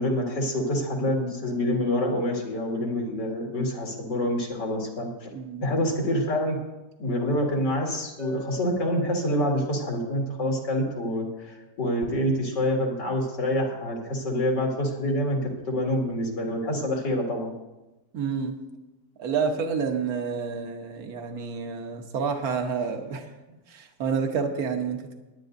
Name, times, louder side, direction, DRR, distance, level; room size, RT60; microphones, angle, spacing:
voice 1, 0.0-5.3 5.6-6.6 7.0-15.4 15.7-17.5, left 1 dB, 90° left, -1 dB, 2.8 m, -26 dB
voice 2, 5.3-5.7 18.1-18.5 19.2-23.3 23.7-25.1, right 5 dB, 60° right, 4 dB, 1.6 m, -29 dB
Chink clink, 8.2-12.2, left 3 dB, 85° right, 2.6 m, -44 dB
22.5 x 10.5 x 2.6 m, 1.0 s
omnidirectional pair, 1.8 m